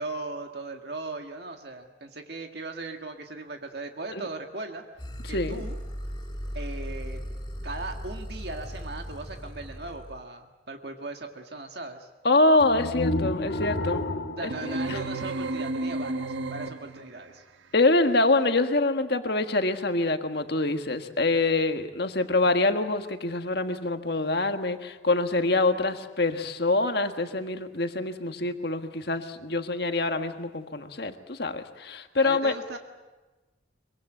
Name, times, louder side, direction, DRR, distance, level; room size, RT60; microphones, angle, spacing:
voice 1, 0.0-4.8 5.3-5.8 6.5-7.2 7.6-12.1 14.4-17.4 32.2-32.8, right 2 dB, 55° right, 4 dB, 1.8 m, -38 dB
sound 1, 5.0-10.2, equal, 20° left, 3.7 m, -37 dB
voice 2, 5.3-5.6 12.2-14.0 14.4-15.0 17.7-32.5, left 2 dB, 55° left, 7 dB, 1.6 m, -25 dB
sound 2, 12.6-15.8, left 1 dB, 75° left, 1.7 m, -31 dB
sound 3, 14.5-17.1, right 2 dB, 75° right, 1.3 m, -32 dB
24.0 x 23.0 x 8.0 m, 1.2 s
head